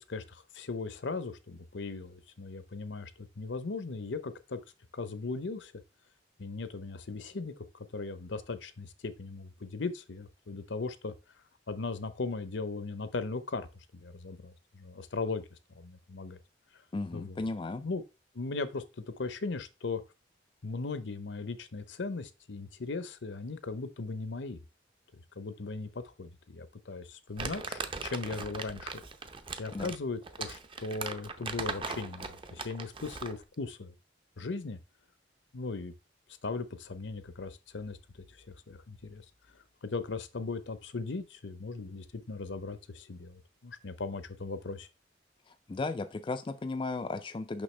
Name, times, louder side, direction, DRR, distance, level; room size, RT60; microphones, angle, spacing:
voice 1, 0.1-4.6 4.9-5.7 6.4-7.7 7.9-11.1 11.7-13.7 13.9-15.4 15.8-16.4 17.1-17.4 17.8-18.0 18.3-18.8 19.2-20.0 20.6-24.6 25.4-29.0 29.6-33.9 34.4-34.8 35.5-35.9 36.4-39.2 39.8-44.9, left 3 dB, 75° left, 0.7 m, -38 dB
voice 2, 16.9-17.8 29.7-29.9 45.5-47.6, left 3 dB, 25° left, 0.3 m, -35 dB
Crumpling crinkling, 27.4-33.4, right 4 dB, 30° right, 0.6 m, -39 dB
6.2 x 5.8 x 3.2 m
head